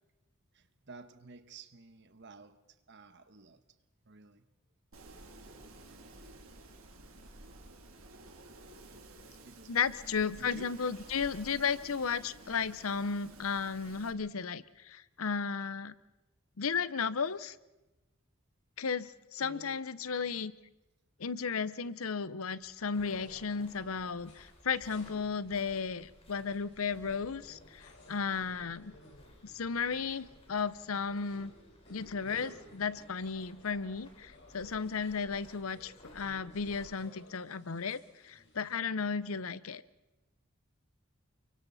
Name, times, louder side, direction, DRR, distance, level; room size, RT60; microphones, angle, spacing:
voice 1, 0.5-3.6 4.0-4.5 9.4-10.8 19.4-19.9, right 3 dB, 55° right, 1.3 m, -53 dB
Wind, 4.9-14.1, right 2 dB, 85° right, 2.9 m, -53 dB
voice 2, 9.7-15.9 16.6-17.6 18.8-20.5 21.2-28.9 29.4-31.5 31.9-39.8, left 5 dB, 85° left, 0.8 m, -34 dB
sound 1, 22.6-36.9, left 1 dB, 30° left, 3.3 m, -60 dB
sound 2, 22.9-38.7, left 1 dB, 55° left, 4.8 m, -57 dB
29.5 x 24.0 x 4.1 m
head